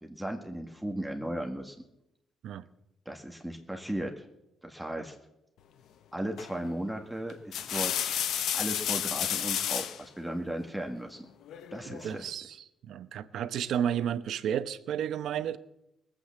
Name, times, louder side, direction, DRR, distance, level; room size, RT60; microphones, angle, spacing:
voice 1, 0.0-1.7 3.0-4.3 4.6-5.1 6.1-11.3 11.7-12.3, right 1 dB, 5° right, 2 dB, 1.7 m, -36 dB
sound 1, 6.4-6.7 7.3-10.0 11.5-12.1, left 10 dB, 80° left, 0.9 m, -31 dB
voice 2, 12.0-12.6 12.8-15.6, right 9 dB, 75° right, 13 dB, 0.8 m, -32 dB
19.5 x 8.5 x 7.3 m, 0.87 s
cardioid pair, 90°, 0 cm